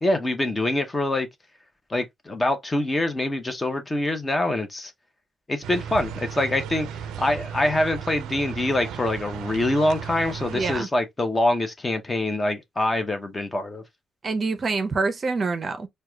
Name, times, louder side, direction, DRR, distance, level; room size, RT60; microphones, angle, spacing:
voice 1, 0.0-1.3 1.9-4.9 5.5-6.9 7.2-13.8, left 1 dB, 20° left, 0.7 m, -25 dB
sound 1, 5.6-10.8, right 8 dB, 90° right, 0.4 m, -35 dB
voice 2, 10.5-10.9 14.2-15.9, right 4 dB, 40° right, 0.5 m, -26 dB
4.6 x 2.2 x 2.2 m
cardioid pair, 110°, 0 cm